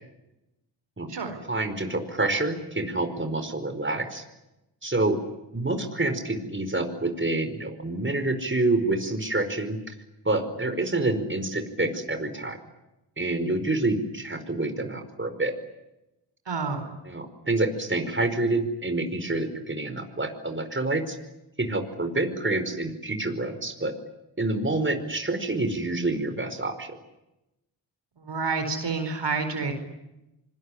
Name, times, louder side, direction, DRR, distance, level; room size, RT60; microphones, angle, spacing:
voice 1, 1.5-4.2 4.8-5.2 5.5-9.8 10.2-12.6 13.2-15.5 17.0-21.2 21.6-23.9 24.4-27.0, right 2 dB, 25° right, 8 dB, 4.9 m, -27 dB
voice 2, 16.5-16.9 28.2-29.7, right 4 dB, 65° right, 7 dB, 4.6 m, -29 dB
26.5 x 20.5 x 10.0 m, 0.93 s
supercardioid pair, 40°, 45 cm